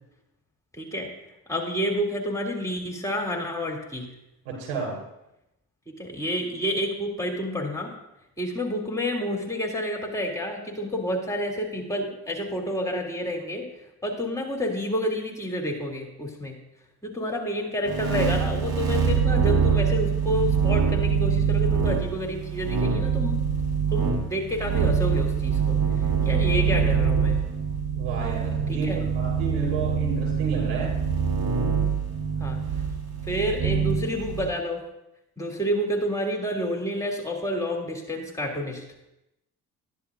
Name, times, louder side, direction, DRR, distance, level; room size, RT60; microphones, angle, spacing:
voice 1, 0.7-1.1 1.5-4.1 6.0-7.9 8.4-13.7 14.0-16.6 17.0-23.4 23.9-25.8 26.2-27.4 28.7-29.0 32.4-32.6 33.2-34.8 35.4-38.8, equal, 5° left, 0 dB, 2.7 m, -29 dB
voice 2, 4.4-5.0 27.9-31.0, right 5 dB, 75° right, -2 dB, 4.2 m, -31 dB
sound 1, 17.9-34.5, right 6 dB, 50° right, 2.3 m, -24 dB
13.5 x 10.5 x 2.5 m, 0.88 s
hypercardioid pair, 50°, 44 cm